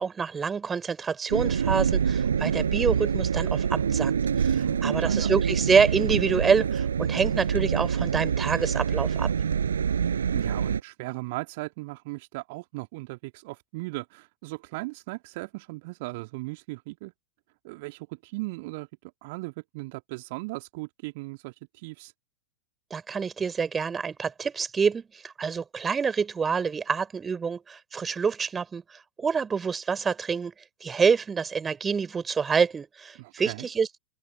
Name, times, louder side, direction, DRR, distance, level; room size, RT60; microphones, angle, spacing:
voice 1, 0.0-4.1 4.4-9.3 22.9-30.5 30.8-33.9, right 6 dB, 15° right, 3.5 m, -27 dB
sound 1, 1.3-10.8, right 7 dB, 70° right, 6.1 m, -26 dB
voice 2, 4.5-5.3 10.3-17.1 17.6-18.9 19.2-22.1 33.1-33.7, right 24 dB, 50° right, 2.6 m, -37 dB
figure-of-eight pair, 90°, 0 cm